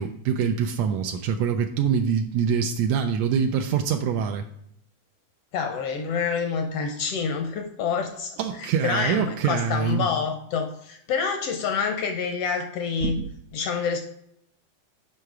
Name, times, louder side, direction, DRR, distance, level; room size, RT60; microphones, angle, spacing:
voice 1, 0.0-4.4 8.4-10.1 13.0-13.3, right 7 dB, 85° right, 5 dB, 1.5 m, -25 dB
voice 2, 5.5-8.3 8.6-13.2 13.5-14.0, left 6 dB, 75° left, 5 dB, 1.4 m, -27 dB
6.5 x 5.7 x 4.8 m, 0.72 s
omnidirectional pair, 3.5 m